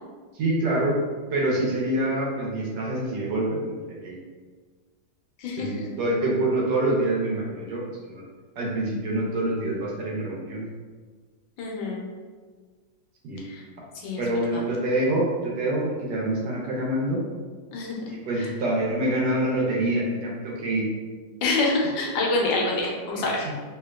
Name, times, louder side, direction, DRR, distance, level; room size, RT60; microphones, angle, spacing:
voice 1, 0.3-1.0 1.3-4.2 5.6-8.2 8.6-10.7 13.2-13.4 14.2-17.2 18.1-20.8 23.1-23.3, right 1 dB, 70° right, -3 dB, 1.2 m, -26 dB
voice 2, 5.4-5.9 11.6-12.0 13.4-13.6 13.9-14.2 14.5-14.6 17.7-18.0 18.4-18.5 21.4-23.5, left 2 dB, 80° left, -1 dB, 1.3 m, -26 dB
3.2 x 2.8 x 2.3 m, 1.5 s
omnidirectional pair, 2.1 m